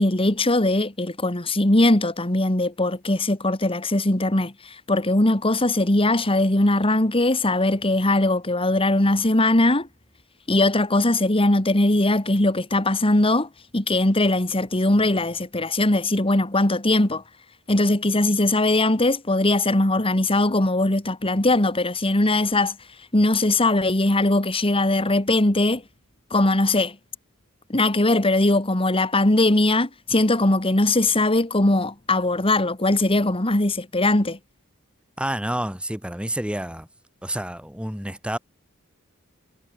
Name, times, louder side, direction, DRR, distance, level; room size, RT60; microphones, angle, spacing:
voice 1, 0.0-9.9 10.5-17.2 17.7-22.8 23.1-25.8 26.3-27.0 27.7-34.4, left 2 dB, 25° left, 2.1 m, -20 dB
voice 2, 35.2-36.9 37.2-38.4, right 1 dB, 5° right, 2.2 m, -29 dB
head